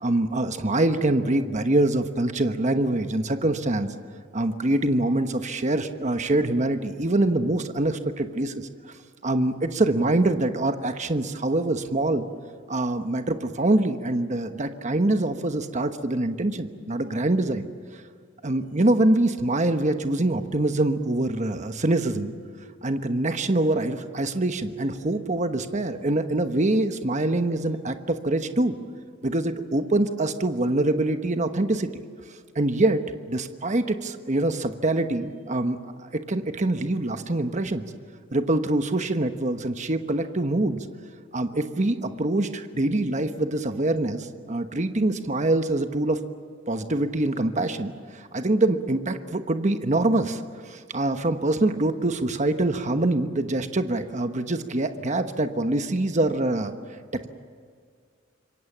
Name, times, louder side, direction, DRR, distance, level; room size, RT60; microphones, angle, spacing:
voice 1, 0.0-3.9 4.3-8.7 9.2-12.3 12.7-17.7 18.4-22.3 22.8-28.7 29.2-31.9 32.5-33.0 33.3-35.8 36.3-37.8 38.3-40.8 41.3-46.2 46.7-56.7 57.1-57.3, right 2 dB, 35° right, 8 dB, 1.1 m, -24 dB
27.0 x 23.5 x 7.3 m, 2.1 s
head